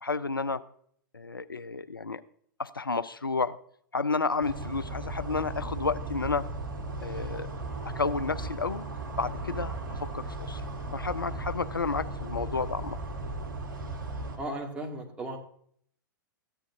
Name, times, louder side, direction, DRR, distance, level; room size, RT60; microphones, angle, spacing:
voice 1, 0.0-0.6 1.1-2.2 2.6-3.6 3.9-6.5 7.0-7.5 8.0-8.9 9.2-9.7 10.0-10.6 10.9-13.0, left 4 dB, 85° left, 16 dB, 0.4 m, -31 dB
sound 1, 4.4-14.4, right 2 dB, 70° right, 1.9 m, -36 dB
voice 2, 14.4-15.4, right 1 dB, 10° right, 0 dB, 1.7 m, -36 dB
13.5 x 9.1 x 2.6 m, 0.63 s
figure-of-eight pair, 100°, 11 cm